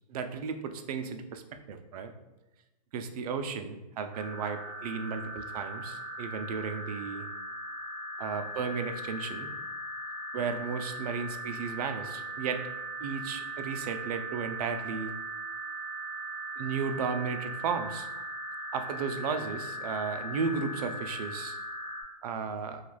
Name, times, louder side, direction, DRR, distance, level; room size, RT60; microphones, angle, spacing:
voice 1, 0.1-1.4 1.7-2.1 2.9-7.3 8.2-9.5 10.3-12.6 13.0-15.1 16.6-18.1 18.7-21.6 22.2-22.8, right 5 dB, 65° right, 7 dB, 0.4 m, -34 dB
sound 1, 4.1-22.0, right 1 dB, 20° right, 0.6 m, -39 dB
3.1 x 2.3 x 2.3 m, 1.0 s
hypercardioid pair, 145°, 21 cm